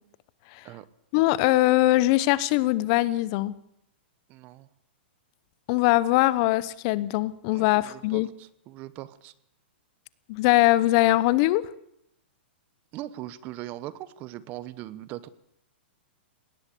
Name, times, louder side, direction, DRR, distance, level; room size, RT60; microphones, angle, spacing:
voice 1, 1.1-3.5 5.7-8.3 10.3-11.7, left 17 dB, 35° left, 19 dB, 0.9 m, -22 dB
voice 2, 4.3-4.7 7.5-9.3 12.9-15.3, right 14 dB, 25° right, 18 dB, 1.0 m, -40 dB
21.0 x 18.0 x 8.4 m, 0.75 s
hypercardioid pair, 160°, 6 cm